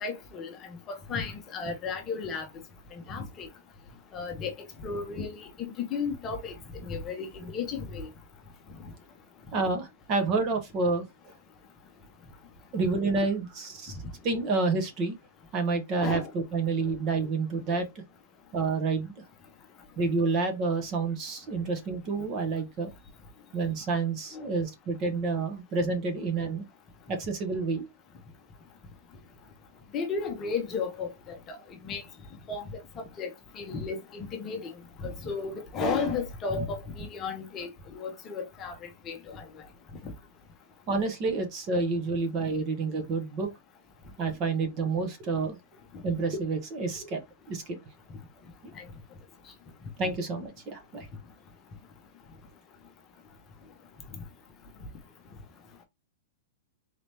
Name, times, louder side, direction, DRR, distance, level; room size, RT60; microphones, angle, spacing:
voice 1, 0.0-0.6 0.9-2.5 3.1-3.5 4.1-6.5 6.8-8.1 16.0-16.3 24.3-24.5 29.9-31.6 31.8-32.0 32.5-32.6 33.2-33.3 33.5-34.6 35.0-38.7 39.1-39.4 48.8-48.9, left 5 dB, 20° left, 0.8 m, -33 dB
voice 2, 9.5-11.3 12.7-14.0 14.2-15.2 15.5-17.9 18.5-19.2 20.0-22.9 23.5-26.6 27.1-27.9 40.9-43.5 44.2-45.6 46.0-47.2 47.5-47.8 50.0-51.1, right 3 dB, 25° right, 0.8 m, -29 dB
4.1 x 2.9 x 3.3 m
supercardioid pair, 175°, 0 cm